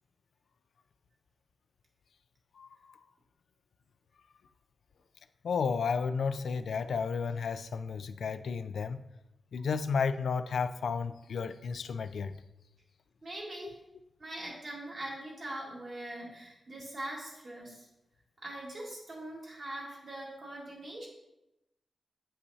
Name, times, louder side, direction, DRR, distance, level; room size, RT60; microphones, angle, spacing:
voice 1, 2.6-2.9 5.4-9.0 9.5-12.4, left 5 dB, 75° left, 0.3 m, -32 dB
voice 2, 13.2-13.8 14.2-17.9 18.4-21.1, right 1 dB, 40° right, 1.8 m, -42 dB
8.3 x 5.5 x 2.7 m
wide cardioid pair, 155°, 0 cm